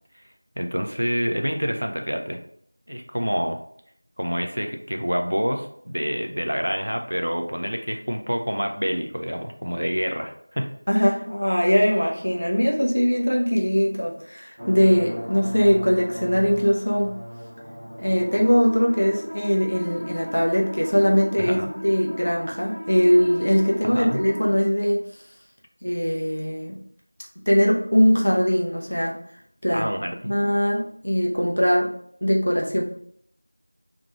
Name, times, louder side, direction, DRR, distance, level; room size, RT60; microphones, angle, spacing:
voice 1, 0.6-2.4 2.9-3.6 4.2-10.7 21.4-21.7 23.8-24.2 29.7-30.4, equal, 45° right, 4 dB, 0.5 m, -27 dB
voice 2, 10.9-17.2 18.0-21.6 21.8-25.0 25.8-26.8 27.5-29.1 29.6-29.9 30.2-31.9 32.2-32.8, equal, 30° left, -1 dB, 0.6 m, -21 dB
sound 1, 14.6-24.5, equal, 10° right, 0.8 m, -36 dB
3.7 x 3.0 x 4.6 m, 0.66 s
figure-of-eight pair, 180°, 0 cm